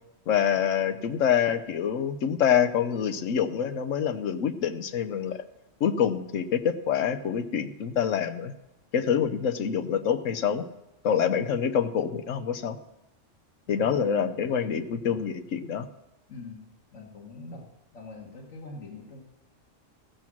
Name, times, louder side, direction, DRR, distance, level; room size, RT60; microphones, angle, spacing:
voice 1, 0.3-5.4 5.8-8.5 8.9-10.7 11.0-12.8 13.7-15.9, left 8 dB, 90° left, 9 dB, 1.1 m, -26 dB
voice 2, 13.7-14.4 16.3-17.7 17.9-19.2, left 3 dB, 70° left, 0 dB, 1.9 m, -44 dB
15.5 x 7.2 x 6.1 m, 0.95 s
omnidirectional pair, 1.3 m